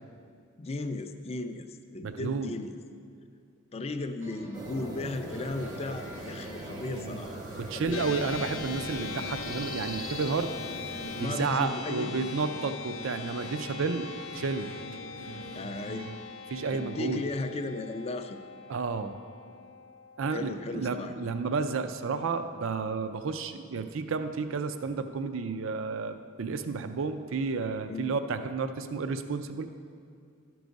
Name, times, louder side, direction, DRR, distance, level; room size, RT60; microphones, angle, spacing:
voice 1, 0.6-2.7 3.7-7.4 7.7-8.2 11.1-12.2 15.5-16.1 16.7-18.4 20.3-21.1 27.9-28.1, left 2 dB, 30° left, 8 dB, 0.4 m, -36 dB
voice 2, 2.0-2.5 7.6-10.5 11.2-14.1 14.3-14.7 16.5-17.2 18.7-19.2 20.2-29.7, right 4 dB, 65° right, 9 dB, 0.5 m, -31 dB
sound 1, 4.2-16.1, right 1 dB, 90° right, 1.9 m, -44 dB
sound 2, 4.5-11.2, right 1 dB, 20° right, 0.6 m, -42 dB
sound 3, 7.9-21.4, left 6 dB, 70° left, 0.7 m, -42 dB
12.5 x 4.7 x 5.2 m, 2.3 s
head